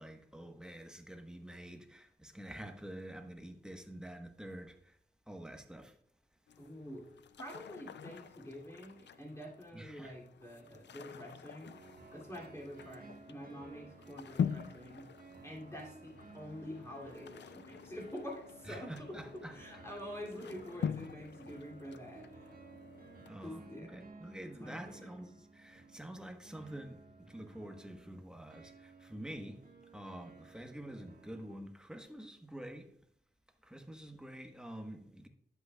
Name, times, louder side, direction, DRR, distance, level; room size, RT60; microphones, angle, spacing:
voice 1, 0.0-4.8 5.3-5.9 9.7-10.1 18.7-19.6 23.3-27.0 27.3-29.6 29.9-32.9 33.6-35.3, right 1 dB, 5° right, 1.2 m, -47 dB
sound 1, 6.5-23.3, left 7 dB, 85° left, 0.4 m, -45 dB
voice 2, 6.6-7.1 7.4-11.7 12.1-15.1 15.4-22.5 23.4-24.0 24.4-25.1, equal, 15° left, 2.7 m, -47 dB
sound 2, 11.6-31.6, right 4 dB, 55° right, 1.6 m, -56 dB
11.0 x 8.1 x 2.3 m
cardioid pair, 60°, 18 cm